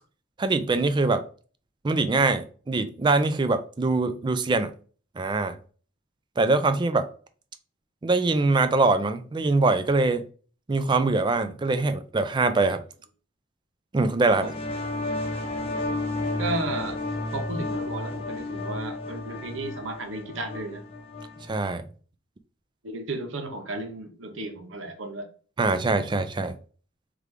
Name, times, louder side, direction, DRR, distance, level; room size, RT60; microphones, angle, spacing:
voice 1, 0.4-1.2 1.8-4.7 5.2-5.6 6.4-7.1 8.0-10.2 10.7-12.8 13.9-14.4 21.5-21.8 25.6-26.5, right 3 dB, 25° right, 0.4 m, -23 dB
sound 1, 14.2-21.6, left 2 dB, 30° left, 0.8 m, -32 dB
voice 2, 16.4-17.0 17.3-20.8 22.8-25.3, right 2 dB, 80° right, 0.8 m, -34 dB
3.6 x 3.3 x 3.3 m
head